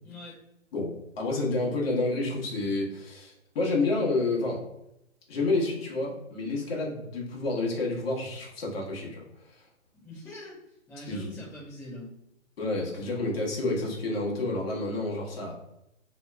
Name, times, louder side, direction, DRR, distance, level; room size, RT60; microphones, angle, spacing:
voice 1, 0.0-0.3 9.9-10.6 10.9-12.1, left 1 dB, 5° left, -11 dB, 0.9 m, -43 dB
voice 2, 0.7-4.6 5.3-9.2 9.5-9.6 11.1-11.3 12.6-15.5, left 2 dB, 50° left, -3 dB, 1.2 m, -29 dB
3.0 x 2.7 x 2.2 m, 0.84 s
hypercardioid pair, 135°, 39 cm